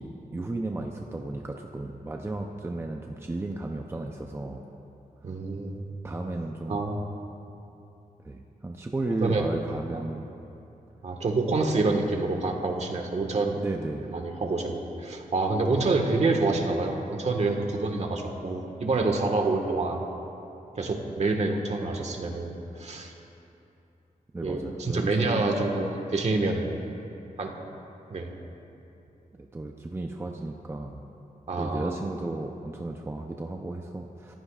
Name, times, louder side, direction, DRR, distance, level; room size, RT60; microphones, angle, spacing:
voice 1, 0.0-4.6 6.0-6.8 8.2-10.3 13.6-14.1 15.7-15.8 24.3-25.5 29.3-31.0 31.6-34.4, right 2 dB, 15° right, 2 dB, 0.7 m, -34 dB
voice 2, 5.2-5.8 6.7-7.0 9.2-9.5 9.9-10.0 11.0-13.6 14.1-20.0 20.8-23.1 24.4-26.7 27.4-27.5 28.1-28.3 31.5-32.0, right 3 dB, 50° right, 2 dB, 1.6 m, -27 dB
30.0 x 15.5 x 2.5 m, 2.8 s
wide cardioid pair, 135°, 15 cm